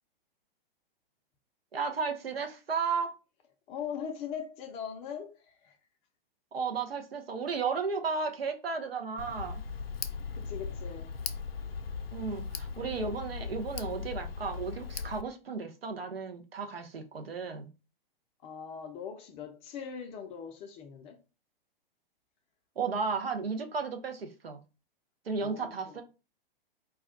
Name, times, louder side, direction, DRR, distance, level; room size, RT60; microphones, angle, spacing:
voice 1, 1.7-3.1 6.5-9.6 12.1-17.7 22.8-24.6 25.2-26.0, right 5 dB, 85° right, 0.6 m, -34 dB
voice 2, 3.7-5.8 10.3-11.1 18.4-21.2 25.4-26.0, left 7 dB, 20° left, 0.4 m, -41 dB
Tick, 9.2-15.2, left 5 dB, 80° left, 0.4 m, -38 dB
2.3 x 2.1 x 3.6 m
figure-of-eight pair, 105°, 29 cm